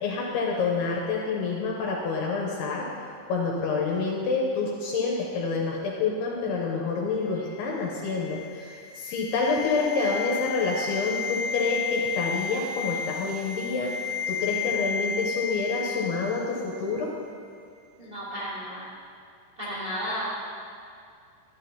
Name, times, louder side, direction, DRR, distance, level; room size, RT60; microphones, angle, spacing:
voice 1, 0.0-2.9 3.3-13.9 14.3-17.1, left 4 dB, 80° left, -2 dB, 2.6 m, -28 dB
sound 1, 7.4-16.7 16.9-17.1, left 6 dB, 90° right, 3.9 m, -33 dB
voice 2, 18.0-18.9 19.6-20.3, equal, 35° right, -10 dB, 2.1 m, -33 dB
12.0 x 9.4 x 2.8 m, 2.3 s
omnidirectional pair, 5.2 m